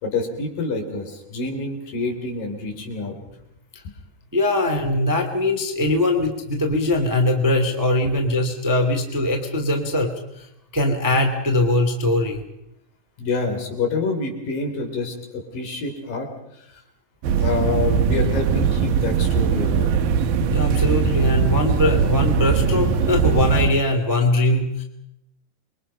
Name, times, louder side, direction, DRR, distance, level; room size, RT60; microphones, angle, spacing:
voice 1, 0.0-3.4 13.2-16.8 17.4-19.9, left 3 dB, 60° left, 3 dB, 5.0 m, -27 dB
voice 2, 4.3-10.5 10.7-12.4 20.5-24.8, left 1 dB, 10° right, 3 dB, 1.5 m, -21 dB
sound 1, 17.2-23.7, right 6 dB, 75° right, 2.8 m, -20 dB
28.0 x 22.5 x 5.6 m, 0.82 s
omnidirectional pair, 4.4 m